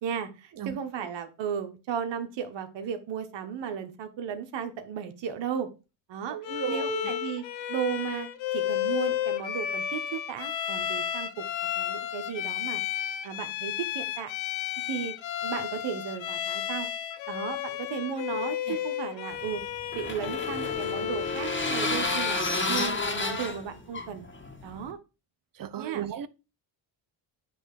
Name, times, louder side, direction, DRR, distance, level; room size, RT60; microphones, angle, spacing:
voice 1, 0.0-5.7 6.1-6.4 6.7-11.5 11.7-12.8 13.2-14.3 14.9-15.1 15.4-16.9 17.3-19.6 19.9-22.4 22.7-24.2 24.6-25.0 25.7-26.0, right 8 dB, 70° right, 1.5 m, -35 dB
voice 2, 6.3-7.1 18.7-18.8 25.5-26.3, right 11 dB, 50° right, 0.9 m, -34 dB
Bowed string instrument, 6.4-21.7, left 11 dB, 85° left, 1.0 m, -32 dB
sound 1, 19.4-24.9, left 3 dB, 25° left, 1.9 m, -31 dB
10.0 x 3.5 x 6.6 m
cardioid pair, 85°, 45 cm